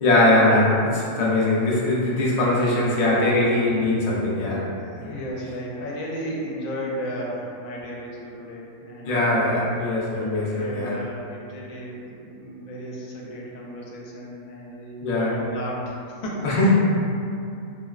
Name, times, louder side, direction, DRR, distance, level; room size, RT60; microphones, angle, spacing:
voice 1, 0.0-4.7 5.0-5.1 9.1-10.9 15.0-15.3 16.4-16.7, left 1 dB, 60° left, -6 dB, 0.4 m, -21 dB
voice 2, 4.8-9.5 10.4-16.7, equal, 80° left, -3 dB, 1.0 m, -34 dB
3.7 x 2.0 x 2.3 m, 2.6 s
omnidirectional pair, 1.4 m